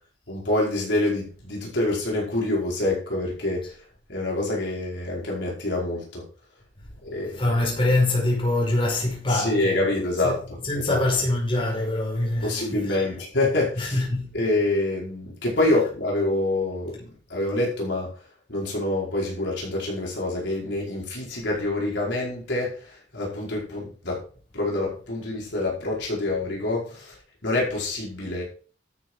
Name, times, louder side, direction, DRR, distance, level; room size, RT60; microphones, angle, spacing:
voice 1, 0.3-3.8 4.1-6.3 7.0-7.4 9.3-11.0 12.4-14.0 14.3-18.1 18.5-24.2 24.5-28.4, left 2 dB, 65° left, 5.0 m, -26 dB
voice 2, 7.3-9.8 10.2-10.4 10.6-13.1 13.8-14.3, left 2 dB, 30° left, 5.1 m, -24 dB
13.0 x 7.0 x 4.8 m
head